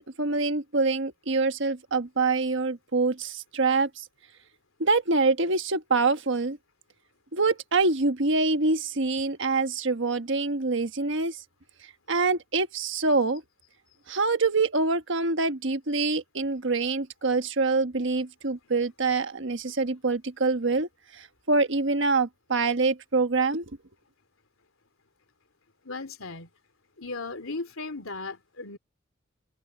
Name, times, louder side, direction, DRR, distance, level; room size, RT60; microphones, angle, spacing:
voice 1, 0.0-4.0 4.8-6.6 7.3-11.4 12.1-13.4 14.1-23.7, right 3 dB, 60° right, 1.4 m, -25 dB
voice 2, 25.8-26.5 27.0-28.8, left 3 dB, 85° left, 3.1 m, -36 dB
head